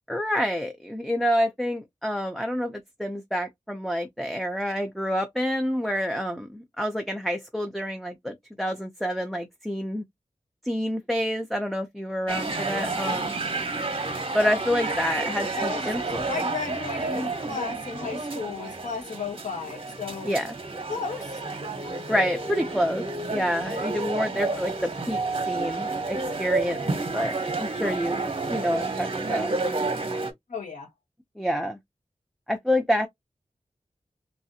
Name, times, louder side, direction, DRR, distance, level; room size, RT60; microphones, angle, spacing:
voice 1, 0.1-10.0 10.6-13.3 14.3-16.3 20.2-20.5 22.1-25.2 25.5-26.8 27.1-28.2 28.5-29.5 31.4-31.8 32.5-33.1, equal, ahead, 0.5 m, -28 dB
sound 1, 12.3-30.3, right 3 dB, 45° right, 0.9 m, -30 dB
voice 2, 15.3-20.3 20.9-21.4 24.5-24.6 30.5-30.9, left 4 dB, 85° left, 1.7 m, -34 dB
3.2 x 2.6 x 2.7 m
wide cardioid pair, 85°, 13 cm